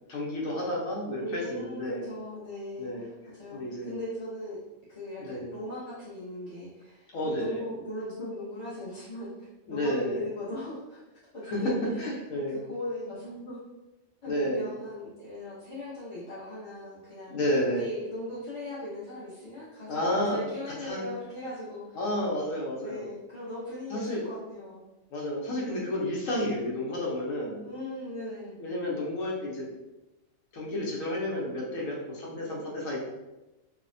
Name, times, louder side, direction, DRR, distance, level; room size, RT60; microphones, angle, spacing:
voice 1, 0.1-2.1 2.8-3.1 3.5-4.0 5.2-5.5 7.1-7.7 9.7-10.3 11.5-12.6 14.3-14.6 17.3-17.9 19.9-21.1 21.9-23.1 23.9-24.2 25.1-27.7 28.6-29.7 30.5-33.0, left 1 dB, 75° left, -3 dB, 1.1 m, -31 dB
voice 2, 1.2-4.6 4.9-11.0 11.3-12.1 12.5-13.6 14.2-17.3 17.7-22.0 22.8-24.8 27.6-28.5, left 1 dB, 30° left, -11 dB, 0.6 m, -39 dB
3.1 x 2.1 x 2.5 m, 1.0 s
omnidirectional pair, 1.4 m